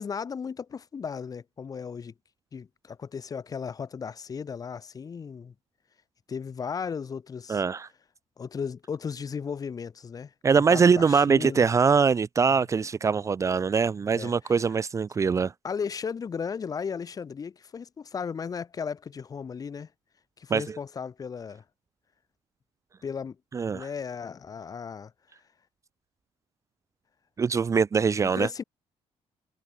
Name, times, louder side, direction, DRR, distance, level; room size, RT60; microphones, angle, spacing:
voice 1, 0.0-2.1 2.5-5.5 6.3-7.6 8.4-10.3 10.7-11.7 14.1-14.5 15.6-19.9 20.4-21.6 23.0-23.4 23.7-25.1 28.2-28.6, left 6 dB, 35° left, 5.1 m, -35 dB
voice 2, 7.5-7.9 10.4-15.5 20.5-20.8 23.5-23.9 27.4-28.5, right 5 dB, 30° right, 0.9 m, -23 dB
cardioid pair, 140°, 11 cm